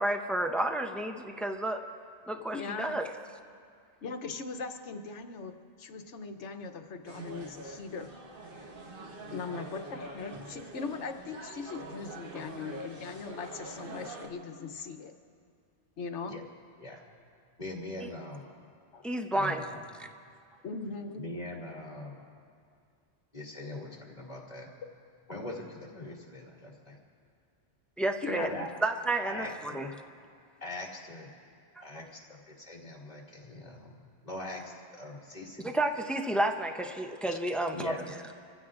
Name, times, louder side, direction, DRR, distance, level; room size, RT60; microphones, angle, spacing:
voice 1, 0.0-1.8 2.3-3.1 18.0-18.1 19.0-19.7 28.0-28.5 28.8-29.5 29.7-29.9 31.8-31.9 35.6-37.9, right 1 dB, ahead, 4 dB, 0.4 m, -30 dB
voice 2, 2.3-3.0 4.0-8.1 9.3-15.1 16.0-16.3 18.9-19.1 20.6-21.3 28.2-28.7, left 5 dB, 80° left, 6 dB, 1.2 m, -39 dB
sound 1, 7.0-14.3, right 2 dB, 50° right, 1.4 m, -45 dB
voice 3, 17.6-18.5 19.3-19.8 21.2-22.3 23.3-24.7 25.3-27.0 28.4-28.7 29.2-29.8 30.6-31.3 31.8-34.0 34.2-35.7 37.7-38.1, left 1 dB, 35° left, -3 dB, 2.5 m, -42 dB
29.0 x 15.5 x 2.5 m, 2.3 s
omnidirectional pair, 1.2 m